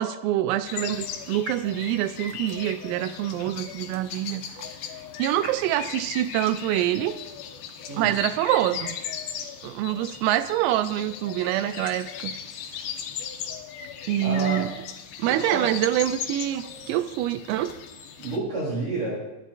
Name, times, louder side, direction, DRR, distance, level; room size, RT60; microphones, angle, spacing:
voice 1, 0.0-4.4 5.2-7.2 8.0-9.0 9.6-12.3 14.1-14.7 15.2-17.7, right 13 dB, 90° right, 11 dB, 3.3 m, -25 dB
sound 1, 0.6-18.4, left 8 dB, 70° left, 2.5 m, -37 dB
voice 2, 14.2-14.6 15.2-15.7 18.2-19.2, right 2 dB, 40° right, -6 dB, 4.7 m, -29 dB
25.5 x 12.0 x 2.5 m, 1.0 s
omnidirectional pair, 5.9 m